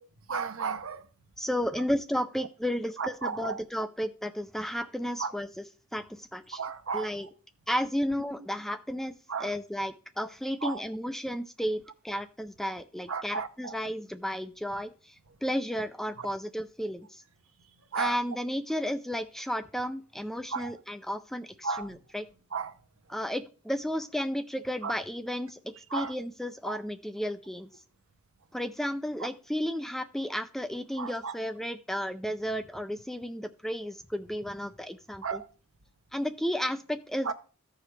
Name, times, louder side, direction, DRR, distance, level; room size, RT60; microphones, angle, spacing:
voice 1, 0.3-1.1 3.0-3.6 5.2-5.3 6.5-7.1 9.3-9.5 10.6-10.8 13.1-13.8 16.2-16.3 17.9-18.2 20.5-20.8 21.6-22.0 22.5-22.8 24.8-24.9 25.9-26.1 26.7-26.8 29.2-29.3 31.0-31.3 35.2-35.5 37.2-37.3, right 5 dB, 65° right, 8 dB, 0.8 m, -34 dB
voice 2, 1.4-5.5 5.9-6.6 6.9-7.3 7.7-9.1 9.4-15.2 15.4-17.2 18.0-22.2 23.1-27.7 28.5-35.4 36.1-37.3, equal, ahead, 9 dB, 0.3 m, -33 dB
14.5 x 4.9 x 3.2 m, 0.37 s
head